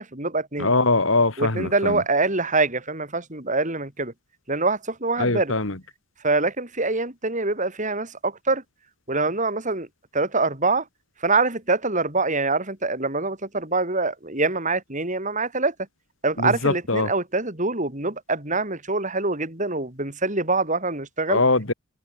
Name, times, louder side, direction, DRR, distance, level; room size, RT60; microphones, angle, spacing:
voice 1, 0.0-0.7 1.4-4.1 4.5-5.5 6.2-8.6 9.1-9.9 10.1-10.8 11.2-15.7 16.2-21.4, right 3 dB, 35° right, 6.2 m, -24 dB
voice 2, 0.6-2.0 5.2-5.8 16.4-17.1 21.3-21.7, left 2 dB, 65° left, 3.1 m, -22 dB
head